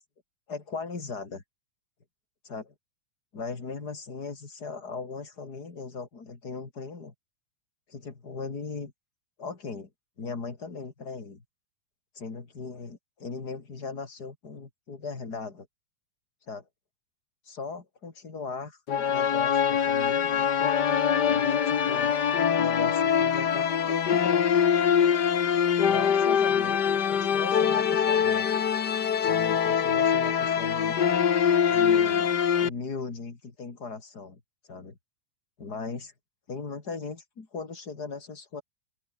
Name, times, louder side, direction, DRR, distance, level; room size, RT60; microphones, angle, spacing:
voice 1, 0.5-1.4 2.5-2.7 3.3-7.1 7.9-8.9 9.4-9.9 10.2-11.4 12.1-15.7 16.5-16.6 17.4-20.5 21.3-22.1 22.5-24.4 25.8-28.5 29.2-31.0 31.7-34.4 34.7-35.0 35.6-36.1 36.5-38.6, left 4 dB, 30° left, 3.5 m, -38 dB
sound 1, 18.9-32.7, left 8 dB, 50° left, 1.2 m, -24 dB
open air
omnidirectional pair, 3.9 m